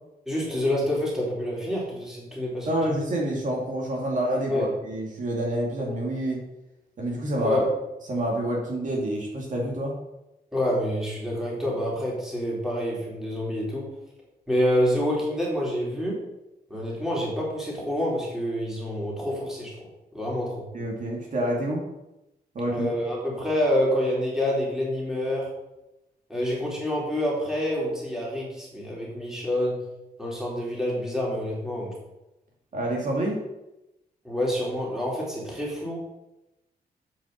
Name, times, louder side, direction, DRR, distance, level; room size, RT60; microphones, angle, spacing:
voice 1, 0.3-2.8 4.5-4.7 7.4-7.7 10.5-13.9 14.5-16.2 16.7-19.8 20.1-20.7 22.6-25.5 26.3-29.8 30.2-31.9 34.2-36.0, equal, 5° right, -5 dB, 3.5 m, -27 dB
voice 2, 2.7-6.4 7.0-7.6 8.1-10.0 20.7-21.9 22.5-22.9 32.7-33.4, right 1 dB, 50° right, -2 dB, 2.3 m, -27 dB
8.3 x 6.1 x 6.7 m, 0.93 s
wide cardioid pair, 150°, 16 cm